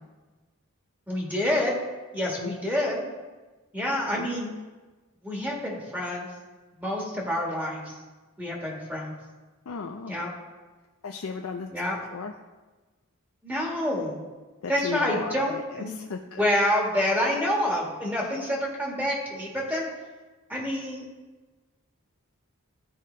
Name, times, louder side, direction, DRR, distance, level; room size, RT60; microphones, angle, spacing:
voice 1, 1.1-1.8 2.1-3.0 3.7-4.5 5.2-6.3 6.8-7.9 8.4-9.1 10.1-10.3 11.7-12.0 13.4-14.2 14.7-16.0 16.4-19.9 20.5-21.0, left 1 dB, 5° right, -2 dB, 1.6 m, -27 dB
voice 2, 9.7-10.1 11.0-11.7 12.1-12.3 14.6-16.4, left 5 dB, 70° left, 3 dB, 0.5 m, -35 dB
13.5 x 5.0 x 3.3 m, 1.2 s
head